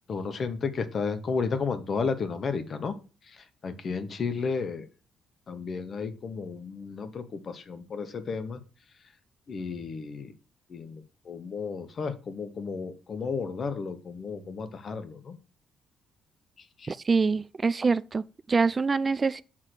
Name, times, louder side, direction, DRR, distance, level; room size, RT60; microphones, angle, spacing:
voice 1, 0.1-2.9 3.3-4.9 5.5-8.6 9.5-10.3 10.7-15.4 16.8-16.9, left 5 dB, 50° left, 1.1 m, -33 dB
voice 2, 16.9-19.4, right 4 dB, 30° right, 0.3 m, -25 dB
6.5 x 3.7 x 6.0 m
cardioid pair, 90°, 0 cm